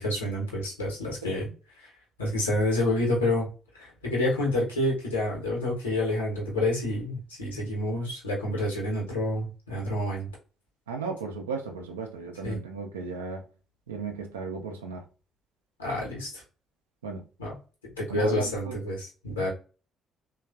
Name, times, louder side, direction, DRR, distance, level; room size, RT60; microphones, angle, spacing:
voice 1, 0.0-1.5 2.2-3.5 3.8-10.3 12.4-12.6 15.8-16.4 17.4-17.6 18.0-19.5, left 1 dB, 85° left, 0.9 m, -28 dB
voice 2, 1.2-1.5 10.9-13.5 13.9-15.0 17.0-17.3 18.1-18.9, right 4 dB, 80° right, 0.4 m, -35 dB
3.3 x 2.3 x 2.3 m
figure-of-eight pair, 45°, 0 cm